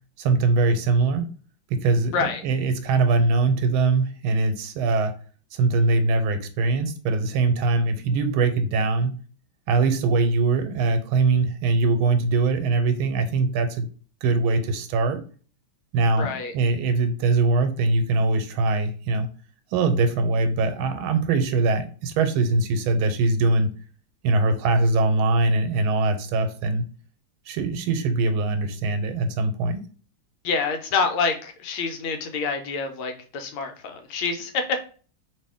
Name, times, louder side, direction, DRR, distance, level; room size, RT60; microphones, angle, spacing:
voice 1, 0.2-1.3 1.7-5.1 5.5-9.2 9.7-13.9 14.2-15.2 15.9-19.3 19.7-23.7 24.2-26.8 27.5-29.8, right 3 dB, 90° right, 8 dB, 1.4 m, -22 dB
voice 2, 16.2-16.5 30.4-34.8, left 5 dB, 90° left, 6 dB, 1.5 m, -27 dB
3.1 x 2.7 x 3.5 m, 0.40 s
omnidirectional pair, 2.3 m